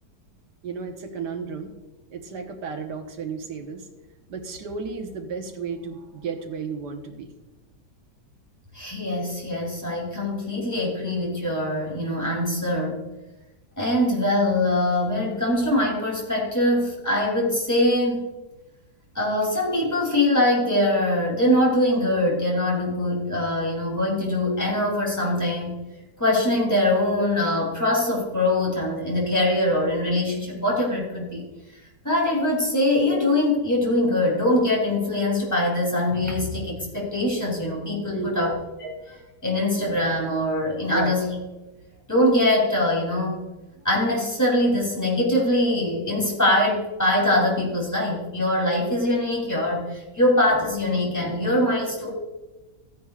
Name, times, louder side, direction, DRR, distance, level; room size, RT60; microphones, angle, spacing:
voice 1, 0.6-1.7 2.1-3.9 4.3-7.3 38.1-38.5 40.9-41.2, right 6 dB, 75° right, 4 dB, 1.7 m, -33 dB
voice 2, 8.7-13.1 13.8-18.3 19.1-25.8 26.2-31.4 32.0-38.5 38.8-39.1 39.4-41.3 42.1-43.4 43.8-52.1, left 1 dB, 10° left, -4 dB, 3.0 m, -23 dB
15.0 x 9.9 x 2.4 m, 1.1 s
omnidirectional pair, 1.8 m